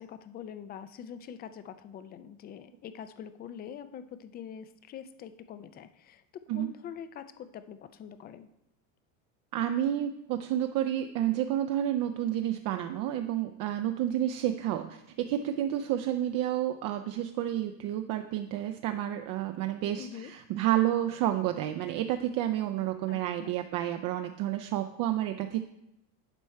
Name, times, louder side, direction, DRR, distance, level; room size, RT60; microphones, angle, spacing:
voice 1, 0.0-8.5 20.0-20.3 23.1-23.6, left 8 dB, 25° left, 12 dB, 0.3 m, -44 dB
voice 2, 9.5-25.6, right 12 dB, 50° right, 7 dB, 0.5 m, -30 dB
11.0 x 4.5 x 4.3 m, 0.84 s
supercardioid pair, 130°, 42 cm